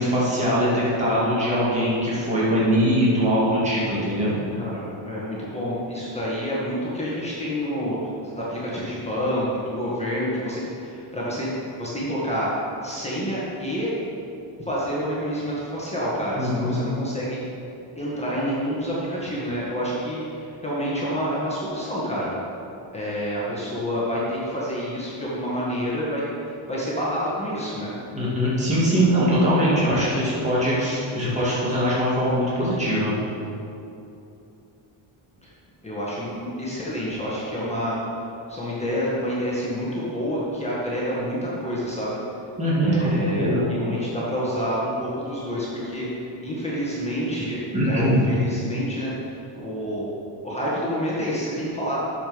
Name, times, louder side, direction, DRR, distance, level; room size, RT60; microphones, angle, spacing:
voice 1, 0.0-4.3 16.4-16.8 28.2-33.1 42.6-43.7 47.7-48.2, equal, 15° right, -8 dB, 2.6 m, -22 dB
voice 2, 4.6-8.0 8.2-11.5 11.8-12.5 12.8-13.9 14.6-17.5 18.0-22.3 22.9-26.2 26.7-27.9 35.4-35.5 35.8-38.0 38.5-42.2 42.8-50.1 50.4-52.0, equal, 15° left, -7 dB, 1.9 m, -28 dB
10.0 x 7.2 x 5.3 m, 2.8 s
cardioid pair, 145°, 49 cm